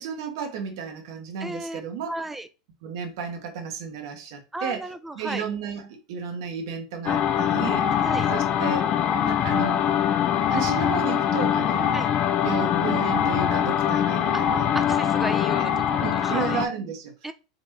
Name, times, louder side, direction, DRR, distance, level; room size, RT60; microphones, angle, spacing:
voice 1, 0.0-2.1 2.8-7.9 8.3-8.9 9.2-9.8 10.5-12.0 12.4-14.8 15.6-15.7 16.0-17.1, right 5 dB, 65° right, 1.2 m, -33 dB
voice 2, 1.4-1.8 2.1-2.5 4.5-5.5 8.0-8.3 11.9-12.1 14.3-14.4 14.7-16.6 17.2-17.3, right 1 dB, 10° right, 0.6 m, -34 dB
sound 1, 7.1-16.7, left 9 dB, 40° left, 0.7 m, -23 dB
4.1 x 4.1 x 2.9 m
hypercardioid pair, 90°, 3 cm